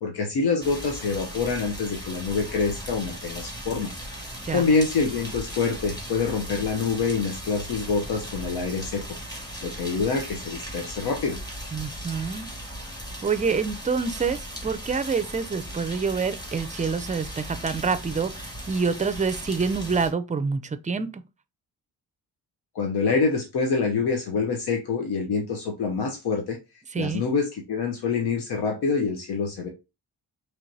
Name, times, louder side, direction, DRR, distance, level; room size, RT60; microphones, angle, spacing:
voice 1, 0.0-3.9 4.5-9.0 9.6-11.4 22.7-26.6 27.0-29.7, left 4 dB, 80° left, 0.8 m, -26 dB
sound 1, 0.6-20.1, equal, 10° left, 1.7 m, -38 dB
voice 2, 11.7-12.5 13.2-21.2 26.9-27.2, right 5 dB, 20° right, 0.4 m, -27 dB
4.5 x 3.2 x 2.7 m
cardioid pair, 75°, 38 cm